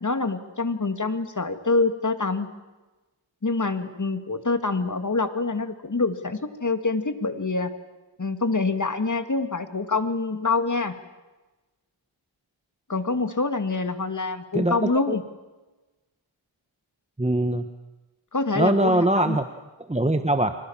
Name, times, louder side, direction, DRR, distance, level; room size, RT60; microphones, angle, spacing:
voice 1, 0.0-2.5 3.4-7.7 8.2-11.0 12.9-15.2 18.3-19.4, left 3 dB, 35° left, 8 dB, 2.5 m, -26 dB
voice 2, 14.5-15.1 17.2-17.6 18.6-19.4 19.9-20.5, right 1 dB, 15° right, 8 dB, 1.4 m, -22 dB
29.5 x 25.5 x 7.4 m, 1.1 s
wide cardioid pair, 75°, 49 cm